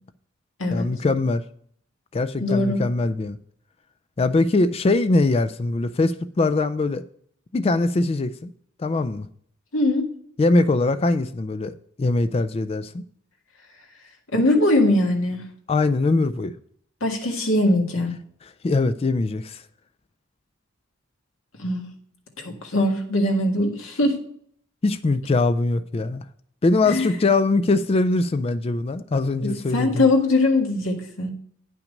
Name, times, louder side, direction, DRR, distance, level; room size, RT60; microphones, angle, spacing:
voice 1, 0.7-1.4 2.1-3.4 4.2-7.0 7.5-8.5 8.8-9.3 10.4-13.0 15.7-16.5 18.6-19.6 24.8-26.2 26.6-30.1, left 2 dB, 30° left, 0.3 m, -22 dB
voice 2, 2.4-2.8 9.7-10.1 14.3-15.4 17.0-18.1 21.6-21.9 22.4-24.2 26.9-27.1 29.4-31.3, left 2 dB, 80° left, 1.8 m, -21 dB
9.2 x 5.9 x 5.2 m
head